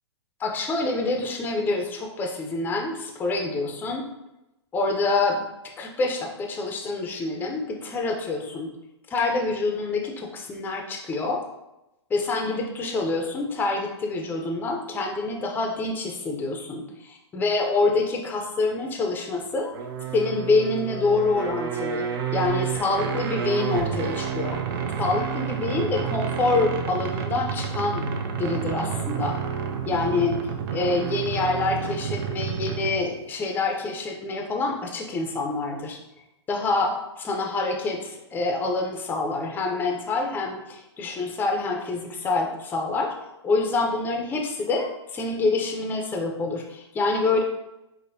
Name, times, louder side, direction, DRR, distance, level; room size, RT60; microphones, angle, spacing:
voice 1, 0.4-4.1 4.7-5.5 5.8-8.7 9.1-11.4 12.1-19.7 20.1-24.6 25.0-28.1 28.4-29.4 29.9-30.4 30.7-36.0 36.5-43.2 43.4-47.4, left 3 dB, 15° left, 2 dB, 0.5 m, -26 dB
sound 1, 19.7-33.1, right 7 dB, 50° right, 0.5 m, -30 dB
5.2 x 2.1 x 2.6 m, 0.92 s
hypercardioid pair, 120°, 15 cm